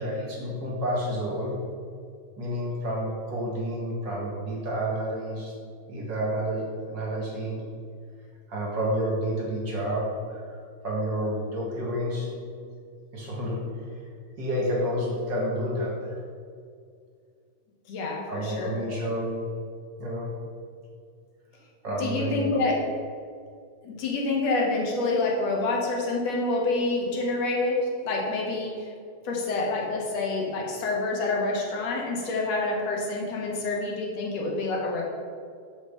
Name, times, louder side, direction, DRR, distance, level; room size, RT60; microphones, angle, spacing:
voice 1, 0.0-1.6 2.4-5.5 5.9-6.7 6.9-7.6 8.5-12.3 13.1-13.6 14.4-15.9 18.3-19.4 20.0-20.3 21.8-22.5, equal, 45° right, -3 dB, 2.0 m, -29 dB
voice 2, 17.9-19.0 22.0-22.9 23.8-28.9 29.2-35.0, left 3 dB, 65° left, -2 dB, 2.6 m, -27 dB
6.6 x 6.3 x 6.7 m, 2.2 s
omnidirectional pair, 3.4 m